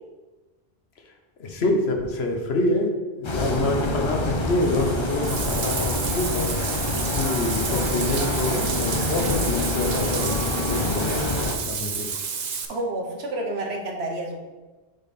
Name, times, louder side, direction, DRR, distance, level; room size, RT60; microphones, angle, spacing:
voice 1, 1.4-2.9 3.2-6.5 7.1-11.3 11.6-12.1, left 2 dB, 75° left, 3 dB, 1.1 m, -26 dB
sound 1, 3.2-11.5, left 2 dB, 30° left, 0.6 m, -26 dB
Bathtub (filling or washing), 4.6-12.6, right 6 dB, 50° right, 0.6 m, -30 dB
voice 2, 12.7-14.4, right 1 dB, 75° right, 2 dB, 1.2 m, -29 dB
6.4 x 4.1 x 4.1 m, 1.2 s
omnidirectional pair, 1.1 m